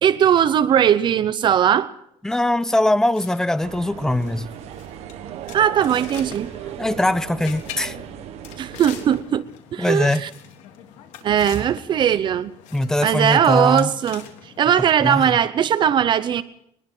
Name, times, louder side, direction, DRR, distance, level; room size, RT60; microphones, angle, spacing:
voice 1, 0.0-1.9 5.5-6.5 8.6-9.4 9.7-10.3 11.2-12.5 13.0-14.3 14.6-16.4, right 9 dB, 40° right, 0.8 m, -19 dB
voice 2, 2.2-4.5 6.8-7.9 9.8-10.2 12.7-13.9 15.0-15.4, left 1 dB, 5° left, 0.8 m, -21 dB
sound 1, 3.1-14.9, left 9 dB, 80° left, 3.4 m, -43 dB
sound 2, 3.6-9.2, right 12 dB, 60° right, 1.3 m, -36 dB
23.0 x 20.5 x 5.6 m
cardioid pair, 150°, 12 cm